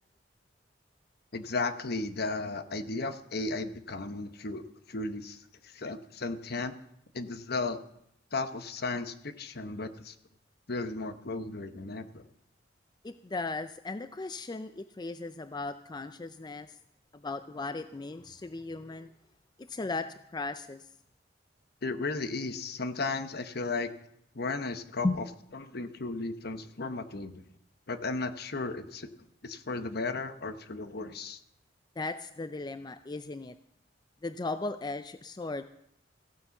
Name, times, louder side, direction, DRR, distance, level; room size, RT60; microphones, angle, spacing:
voice 1, 1.3-6.7 7.1-7.8 8.3-10.1 10.7-12.2 21.8-23.9 24.3-25.2 25.5-27.4 27.9-29.1 29.4-31.4, left 3 dB, 60° left, 10 dB, 1.0 m, -35 dB
voice 2, 13.0-16.8 17.1-19.1 19.6-20.9 25.0-25.2 32.0-33.6 34.2-35.6, left 3 dB, 25° left, 11 dB, 0.4 m, -36 dB
15.5 x 9.7 x 7.0 m, 0.75 s
head